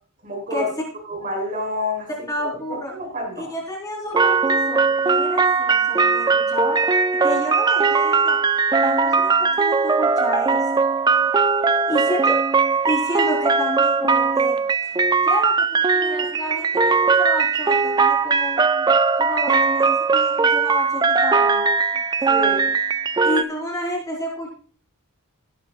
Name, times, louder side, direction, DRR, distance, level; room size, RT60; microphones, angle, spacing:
voice 1, 0.2-0.7 1.1-2.1 2.4-3.5 22.2-22.7, left 1 dB, 40° right, -1 dB, 5.5 m, -28 dB
voice 2, 2.3-2.9 3.4-6.8 7.2-8.4 8.8-10.8 11.6-12.4 12.8-14.6 15.2-18.9 19.2-21.7 23.2-24.5, left 1 dB, 15° left, -3 dB, 4.4 m, -30 dB
sound 1, 4.1-23.4, right 4 dB, 20° right, 0.3 m, -19 dB
17.5 x 8.9 x 2.4 m, 0.42 s
head